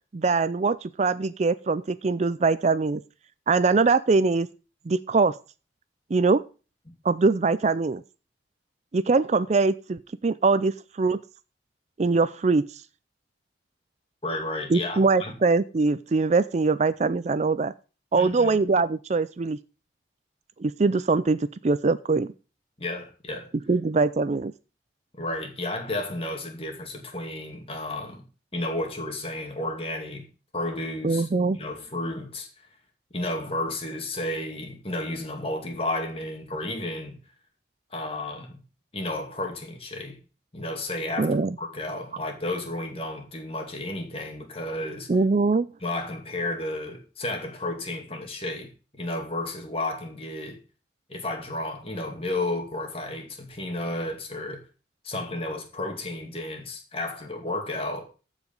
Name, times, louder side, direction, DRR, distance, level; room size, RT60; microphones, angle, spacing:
voice 1, 0.1-3.0 3.5-4.5 4.9-5.3 6.1-6.4 7.0-8.0 8.9-11.2 12.0-12.6 14.7-17.7 18.1-19.6 20.6-22.3 23.7-24.5 31.0-31.6 41.2-41.5 45.1-45.7, right 4 dB, 40° right, 0.4 m, -22 dB
voice 2, 14.2-15.4 18.1-18.6 22.8-23.5 25.1-28.2 28.5-30.3 30.5-31.3 31.5-32.7 33.1-37.2 37.9-38.6 38.9-40.2 40.5-45.1 45.8-50.6 51.1-54.7 55.0-58.0, left 2 dB, 30° left, 2.3 m, -32 dB
14.5 x 5.0 x 5.3 m
head